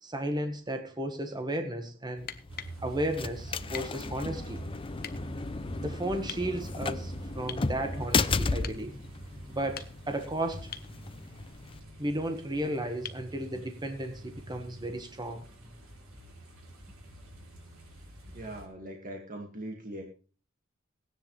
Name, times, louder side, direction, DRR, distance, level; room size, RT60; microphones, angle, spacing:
voice 1, 0.0-2.3 2.8-4.6 5.8-8.9 9.5-10.7 12.0-15.4, right 1 dB, 20° right, 6 dB, 1.4 m, -34 dB
sound 1, 2.1-2.8 3.7-3.9 5.0-5.2 6.3-6.5 7.5-7.7 8.6-8.8 9.6-10.2 10.7-10.9 13.0-13.3 15.1-15.2, left 8 dB, 50° left, 1.0 m, -42 dB
sound 2, 2.2-11.8, left 4 dB, 25° left, 0.5 m, -35 dB
sound 3, 2.5-18.7, right 2 dB, 80° right, 5.2 m, -46 dB
voice 2, 17.9-20.0, right 1 dB, 40° right, 2 dB, 2.0 m, -42 dB
17.5 x 10.0 x 3.3 m, 0.37 s
head